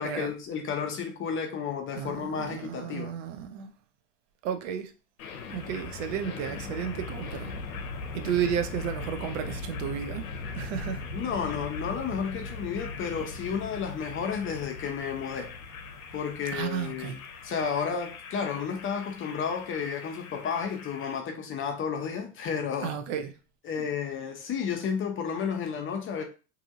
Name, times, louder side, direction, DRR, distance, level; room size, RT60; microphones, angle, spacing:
voice 1, 0.0-3.1 11.1-15.5 16.1-17.2 17.4-23.0 23.6-26.2, left 6 dB, 30° left, 0.7 m, -32 dB
voice 2, 2.0-3.7 4.4-4.9 5.5-7.5 8.1-10.3 10.5-11.1 16.5-17.2 22.8-23.3 23.8-23.9, right 9 dB, 60° right, 0.6 m, -33 dB
sound 1, 5.2-21.2, left 4 dB, 80° left, 0.6 m, -39 dB
2.7 x 2.6 x 2.6 m
hypercardioid pair, 85°, 42 cm